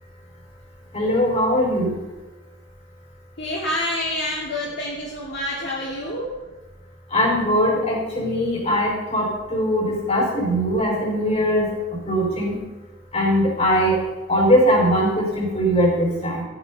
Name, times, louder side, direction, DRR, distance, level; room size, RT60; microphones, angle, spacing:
voice 1, 0.9-1.9 7.1-9.3 9.5-11.7 12.1-12.5 13.1-14.0 14.3-16.4, equal, 35° left, -2 dB, 5.4 m, -20 dB
voice 2, 3.4-6.3, left 1 dB, 60° left, -4 dB, 2.5 m, -27 dB
14.0 x 10.0 x 5.7 m, 1.2 s
head